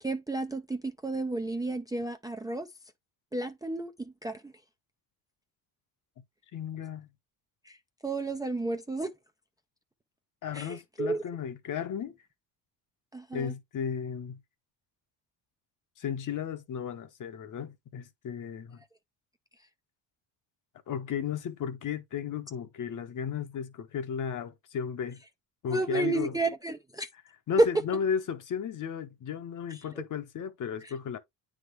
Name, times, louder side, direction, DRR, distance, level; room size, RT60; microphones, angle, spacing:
voice 1, 0.0-2.7 3.3-4.5 7.6-9.1 10.5-11.2 13.1-13.5 25.7-27.1 27.6-27.7 29.7-30.0 30.8-30.9, right 2 dB, 10° right, 0.5 m, -31 dB
voice 2, 6.5-7.1 10.4-12.1 13.3-14.4 16.0-18.8 20.9-25.2 25.6-26.4 27.5-31.2, left 7 dB, 45° left, 1.1 m, -34 dB
9.0 x 3.7 x 3.1 m
cardioid pair, 115°, 43 cm